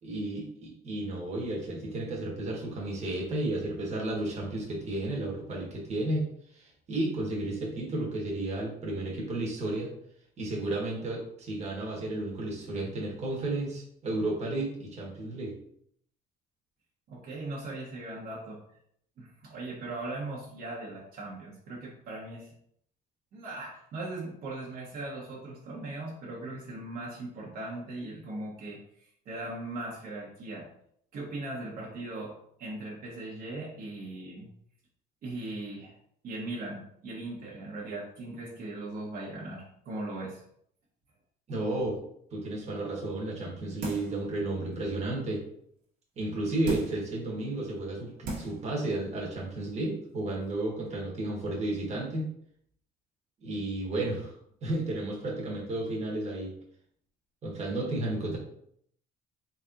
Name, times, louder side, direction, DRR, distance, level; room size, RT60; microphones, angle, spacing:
voice 1, 0.0-6.2 6.5-9.9 10.4-15.5 41.5-42.0 42.3-45.4 46.2-52.3 53.4-54.3 54.6-56.5 57.4-58.4, right 2 dB, 40° right, -2 dB, 1.3 m, -32 dB
voice 2, 17.1-18.6 19.2-22.5 23.3-30.7 31.1-34.5 35.2-35.9 36.2-40.4, right 2 dB, 60° right, -4 dB, 1.2 m, -39 dB
sound 1, 43.8-44.2 44.7-44.8 46.6-47.1 47.8-47.9 48.2-48.7 49.0-49.1, right 2 dB, 75° right, 1.5 m, -36 dB
4.2 x 3.3 x 2.5 m, 0.68 s
cardioid pair, 110°, 17 cm